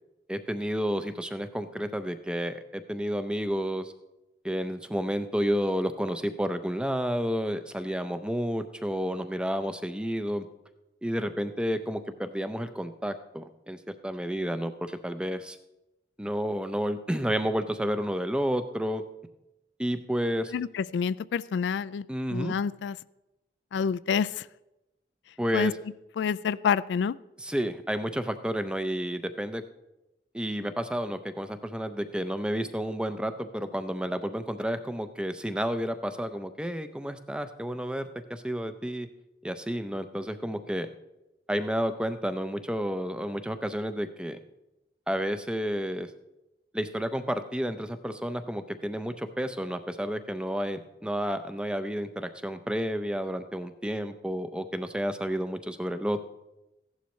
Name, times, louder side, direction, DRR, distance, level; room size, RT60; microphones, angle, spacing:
voice 1, 0.3-3.9 4.4-10.5 11.0-15.6 16.2-19.0 19.8-20.5 22.1-22.5 25.4-25.7 27.4-29.6 30.3-39.1 39.4-40.9 41.5-44.4 45.1-46.1 46.7-56.3, equal, 5° right, 10 dB, 0.5 m, -31 dB
voice 2, 20.5-22.1 22.3-23.0 23.7-24.5 25.5-25.7 26.2-27.2, left 6 dB, 90° left, 18 dB, 0.3 m, -28 dB
15.0 x 11.5 x 3.1 m, 0.94 s
head